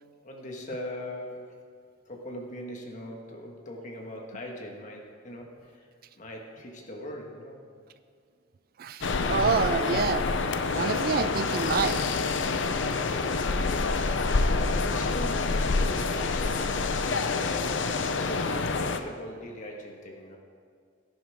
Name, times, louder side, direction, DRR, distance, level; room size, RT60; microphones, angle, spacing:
voice 1, 0.2-1.5 2.0-5.8 6.2-7.6 14.5-20.4, left 1 dB, 40° left, 0 dB, 1.7 m, -40 dB
voice 2, 8.8-10.2 10.8-12.0, right 5 dB, 50° right, 11 dB, 0.4 m, -27 dB
sound 1, 9.0-19.0, left 3 dB, 70° left, 0.6 m, -27 dB
13.5 x 11.5 x 3.7 m, 2.1 s
head